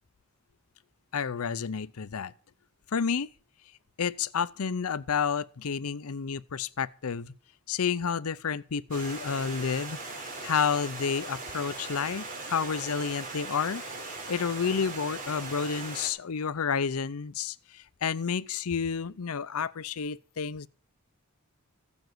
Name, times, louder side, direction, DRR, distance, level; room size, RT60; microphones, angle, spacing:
voice 1, 1.1-2.3 2.9-3.3 4.0-7.3 7.7-10.0 10.4-13.8 14.3-20.7, left 6 dB, 80° left, 0.6 m, -30 dB
Stream, 8.9-16.1, right 3 dB, 35° right, 3.9 m, -39 dB
15.5 x 7.1 x 7.8 m
head